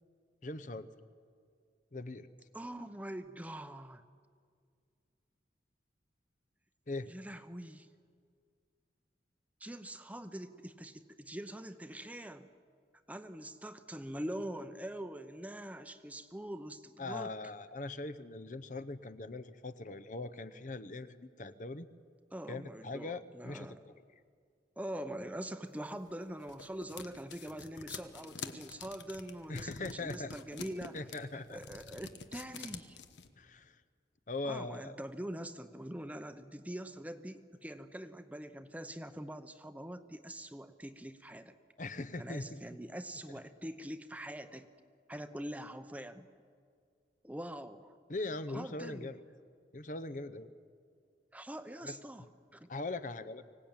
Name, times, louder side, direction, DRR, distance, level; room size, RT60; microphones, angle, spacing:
voice 1, 0.4-0.9 1.9-2.3 6.9-7.1 17.0-21.9 22.5-23.9 29.5-30.3 30.9-31.6 33.4-33.8 34.3-35.0 41.8-42.6 48.1-49.2 49.7-50.5 51.8-52.0 52.7-53.4, left 2 dB, 45° left, 12 dB, 0.8 m, -41 dB
voice 2, 2.5-4.0 7.1-7.9 9.6-12.5 13.1-17.3 22.3-23.8 24.8-31.0 31.3-33.0 34.4-41.5 42.2-44.7 45.1-46.3 47.2-47.9 48.5-49.1 51.3-52.3 52.5-52.7, right 1 dB, 10° right, 9 dB, 0.8 m, -44 dB
sound 1, 26.0-33.3, left 5 dB, 85° left, 1.3 m, -47 dB
24.5 x 18.0 x 8.9 m, 2.1 s
head